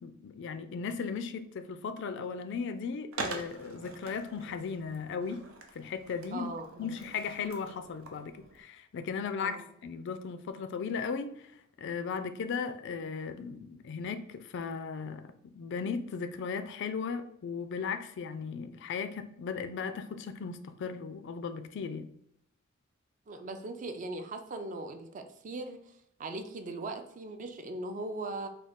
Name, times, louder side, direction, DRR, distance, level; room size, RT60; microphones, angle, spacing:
voice 1, 0.0-5.4 5.7-6.5 6.8-9.6 9.8-11.5 11.8-22.1, left 5 dB, 60° left, 10 dB, 0.3 m, -36 dB
Skateboard, 3.1-8.6, right 3 dB, 80° right, 0.6 m, -44 dB
voice 2, 6.3-7.0 9.4-9.6 23.3-25.8 26.2-28.5, right 2 dB, 40° right, 7 dB, 0.4 m, -39 dB
3.7 x 2.3 x 3.5 m, 0.74 s
head